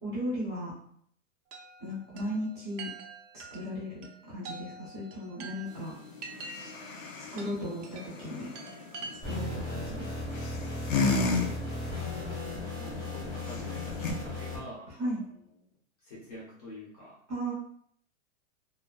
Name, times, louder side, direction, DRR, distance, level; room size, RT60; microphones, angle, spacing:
voice 1, 0.0-0.7 1.8-2.9 3.3-5.9 7.3-8.5 9.2-10.1 15.0-15.2 17.3-17.5, equal, 20° right, -8 dB, 0.6 m, -36 dB
Chime, 1.5-9.6, right 4 dB, 70° right, 0.5 m, -46 dB
sound 1, 5.7-14.1, left 4 dB, 85° left, 0.7 m, -35 dB
sound 2, 9.2-14.6, left 1 dB, 10° left, 0.8 m, -36 dB
voice 2, 11.3-15.3 16.0-17.2, left 1 dB, 30° left, -6 dB, 0.5 m, -47 dB
2.5 x 2.3 x 2.2 m, 0.64 s
supercardioid pair, 175°, 39 cm